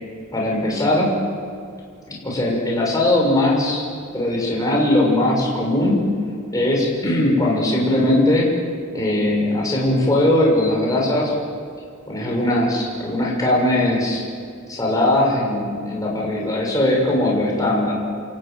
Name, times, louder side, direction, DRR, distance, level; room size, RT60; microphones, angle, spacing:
voice 1, 0.3-1.1 2.2-3.9 4.1-6.0 6.5-8.5 8.9-11.3 12.1-14.2 14.7-17.9, left 1 dB, 15° left, -3 dB, 6.7 m, -19 dB
29.0 x 15.5 x 9.4 m, 2.3 s
head